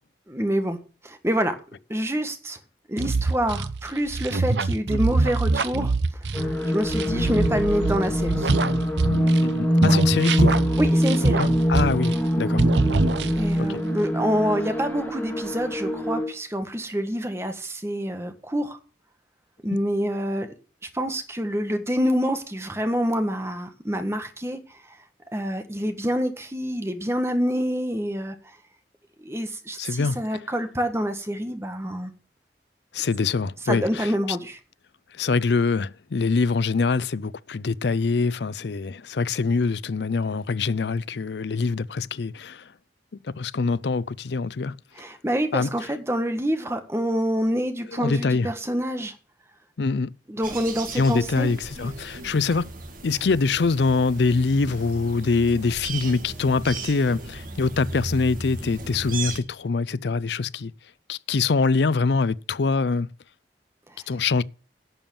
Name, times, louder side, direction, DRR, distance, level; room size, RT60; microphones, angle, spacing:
voice 1, 0.3-0.8 1.0-1.6 1.9-2.6 2.9-5.9 6.4-8.5 10.8-11.4 13.4-18.8 19.6-20.5 20.9-25.0 25.3-28.6 29.2-32.1 33.6-34.6 44.9-49.1 50.3-51.5, equal, 15° right, 1.5 m, -27 dB
sound 1, 3.0-9.5 9.8-12.3 12.6-13.6, right 3 dB, 80° right, 0.9 m, -24 dB
sound 2, 6.3-16.3, equal, 10° left, 2.3 m, -24 dB
voice 2, 9.4-10.6 11.4-12.6 13.6-13.8 29.8-30.2 32.9-34.4 35.2-42.6 43.2-44.8 45.5-45.7 48.0-48.5 49.8-50.1 51.0-52.7 53.0-60.7 61.1-63.1 64.1-64.4, left 4 dB, 70° left, 0.5 m, -24 dB
sound 3, 50.4-59.4, right 3 dB, 50° right, 2.2 m, -36 dB
11.0 x 7.1 x 7.1 m
head